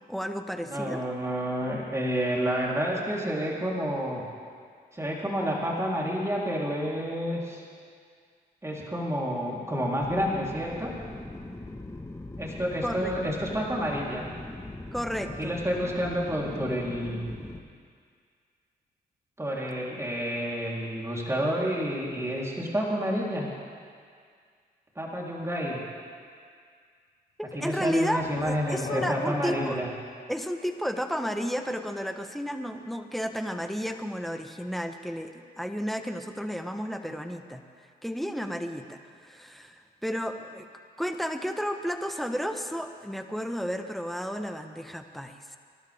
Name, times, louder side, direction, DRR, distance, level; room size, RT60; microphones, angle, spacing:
voice 1, 0.1-1.0 12.8-13.1 14.9-15.5 27.5-29.8 30.3-37.6 38.0-40.7 41.0-45.6, equal, ahead, 6 dB, 1.4 m, -32 dB
voice 2, 0.6-4.2 4.9-7.6 8.6-10.9 12.4-14.3 15.4-17.2 19.4-23.5 25.0-25.8 27.5-29.9, equal, 15° right, -4 dB, 4.0 m, -29 dB
sound 1, 10.0-17.6, left 2 dB, 15° left, 1.7 m, -41 dB
sound 2, 27.9-31.5, left 6 dB, 70° left, 1.4 m, -42 dB
26.5 x 12.0 x 3.7 m, 2.1 s
supercardioid pair, 55°, 18 cm